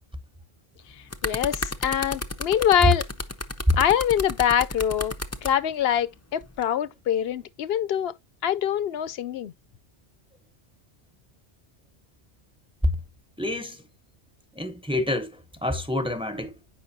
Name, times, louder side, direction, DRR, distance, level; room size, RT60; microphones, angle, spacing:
sound 1, 0.8-5.5 6.4-6.6, left 2 dB, 20° left, 0.5 m, -32 dB
voice 1, 1.2-3.1 3.8-5.1 5.4-8.2 8.4-9.5, left 9 dB, 70° left, 0.8 m, -24 dB
voice 2, 13.4-13.8 14.6-16.5, left 1 dB, 5° right, 0.8 m, -29 dB
8.6 x 5.5 x 2.7 m
omnidirectional pair, 1.1 m